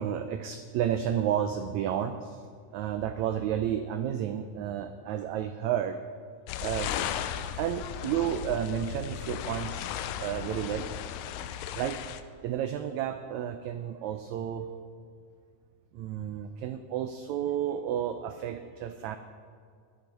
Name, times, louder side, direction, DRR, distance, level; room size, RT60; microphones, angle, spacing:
voice 1, 0.0-2.4 2.7-6.0 6.6-7.2 7.6-10.9 11.7-12.0 12.4-14.7 15.9-19.2, right 10 dB, 85° right, 9 dB, 1.6 m, -31 dB
sound 1, 6.5-12.2, left 10 dB, 85° left, 2.2 m, -36 dB
13.5 x 11.0 x 5.3 m, 2.2 s
omnidirectional pair, 3.8 m